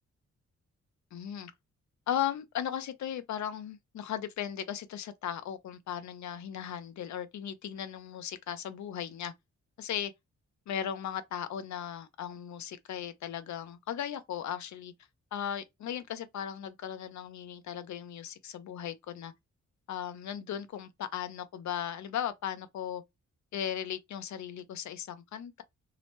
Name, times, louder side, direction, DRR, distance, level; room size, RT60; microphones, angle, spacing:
voice 1, 1.1-1.5 2.1-9.3 9.8-10.1 10.7-14.9 15.3-19.3 19.9-23.0 23.5-25.6, left 9 dB, 75° left, 0.5 m, -37 dB
2.8 x 2.1 x 2.9 m
wide cardioid pair, 170°, 29 cm